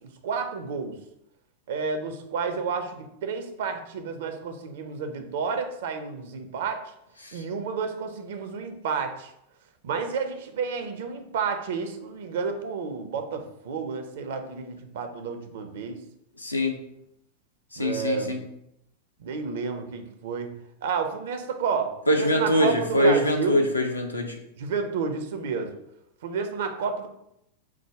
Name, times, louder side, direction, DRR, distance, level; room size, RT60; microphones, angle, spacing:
voice 1, 0.2-1.0 1.7-6.8 7.3-9.3 9.8-16.0 17.8-18.3 19.2-20.5 20.8-23.6 24.6-25.7 26.2-27.1, right 5 dB, 55° right, 6 dB, 0.6 m, -30 dB
voice 2, 16.4-16.7 17.8-18.4 22.1-24.3, equal, 85° left, 2 dB, 0.7 m, -23 dB
4.8 x 2.2 x 4.6 m, 0.78 s
figure-of-eight pair, 90°, 0 cm